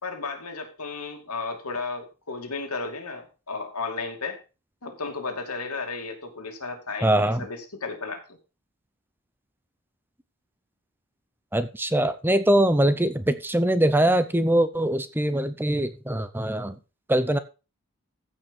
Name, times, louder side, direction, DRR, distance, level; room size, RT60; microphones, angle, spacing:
voice 1, 0.0-4.4 4.8-8.4, left 4 dB, 85° left, 2.6 m, -34 dB
voice 2, 7.0-7.5 11.5-16.8 17.1-17.4, right 1 dB, 10° right, 0.6 m, -22 dB
15.0 x 5.4 x 5.4 m
head